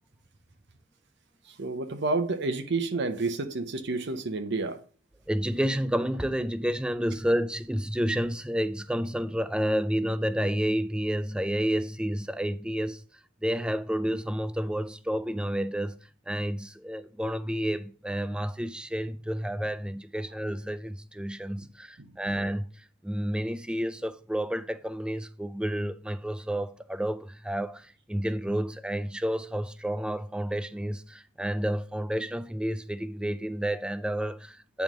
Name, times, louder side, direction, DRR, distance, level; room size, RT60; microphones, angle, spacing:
voice 1, 1.4-4.8 21.6-21.7 22.0-22.1, right 3 dB, 55° right, 0.8 m, -30 dB
voice 2, 5.3-13.0 13.4-16.0 16.3-34.8, equal, 5° right, 0.3 m, -30 dB
9.1 x 3.4 x 6.1 m
head